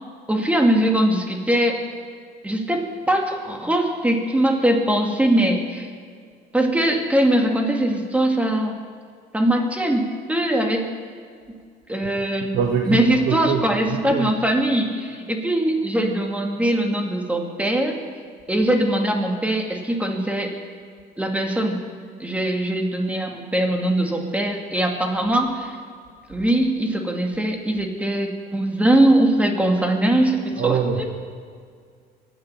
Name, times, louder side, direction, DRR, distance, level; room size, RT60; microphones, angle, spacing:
voice 1, 0.3-1.9 2.4-5.9 6.5-8.8 9.3-10.9 11.9-12.6 12.9-18.0 18.5-20.5 21.2-21.8 22.2-25.8 26.3-31.1, right 1 dB, 10° right, 2 dB, 2.2 m, -21 dB
voice 2, 12.5-13.6 13.9-14.3 30.6-31.1, right 7 dB, 70° right, 2 dB, 1.4 m, -24 dB
24.0 x 9.2 x 5.8 m, 2.1 s
cardioid pair, 110°, 17 cm